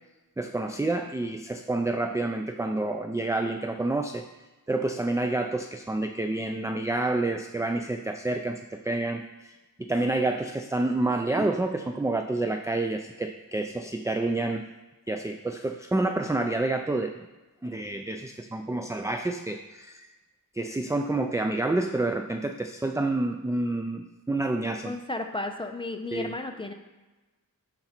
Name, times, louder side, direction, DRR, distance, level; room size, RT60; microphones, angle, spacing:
voice 1, 0.4-4.2 4.7-9.5 9.8-14.7 15.1-17.3 17.6-20.1 20.6-24.9 26.1-26.3, right 2 dB, 10° right, 5 dB, 0.3 m, -28 dB
voice 2, 24.8-26.7, left 2 dB, 15° left, 5 dB, 0.7 m, -33 dB
11.5 x 3.9 x 4.4 m, 1.1 s
wide cardioid pair, 80°, 36 cm